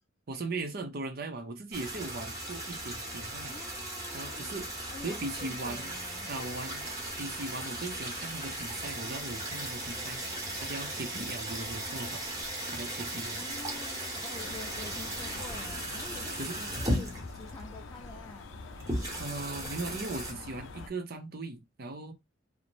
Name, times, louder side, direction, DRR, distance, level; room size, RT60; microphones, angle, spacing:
voice 1, 0.3-3.6 4.1-4.7 5.0-5.9 6.3-6.8 7.2-10.2 10.6-12.2 12.7-13.4 16.4-16.6 19.2-22.1, right 2 dB, 55° right, 0.6 m, -38 dB
sound 1, 1.7-20.3, right 1 dB, 20° right, 0.9 m, -37 dB
voice 2, 3.5-4.5 4.9-6.3 13.4-18.5, left 2 dB, 20° left, 0.4 m, -48 dB
sound 2, 14.4-20.9, left 4 dB, 80° left, 0.4 m, -46 dB
2.5 x 2.1 x 3.0 m
head